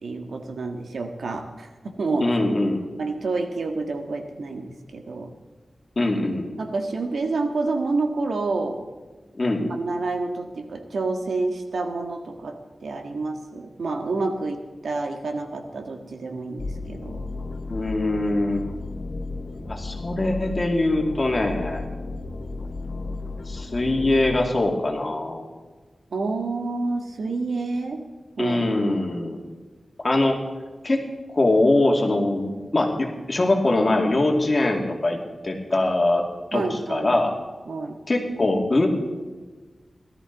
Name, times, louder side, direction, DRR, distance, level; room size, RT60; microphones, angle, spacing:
voice 1, 0.0-2.4 3.0-5.3 6.6-8.8 9.7-17.2 26.1-28.0 28.4-28.6 36.5-37.1 37.7-38.0, right 3 dB, 90° right, 5 dB, 1.6 m, -28 dB
voice 2, 2.2-2.8 6.0-6.5 9.3-9.6 17.7-18.6 19.7-21.8 23.5-25.4 28.4-29.4 30.0-30.4 30.8-31.0 31.3-35.2 35.4-36.2 36.5-37.3 38.1-38.9, left 2 dB, 35° left, 1 dB, 2.5 m, -22 dB
sound 1, 16.6-24.4, left 3 dB, 60° left, 1.6 m, -34 dB
18.0 x 13.0 x 4.0 m, 1.3 s
wide cardioid pair, 115°, 0 cm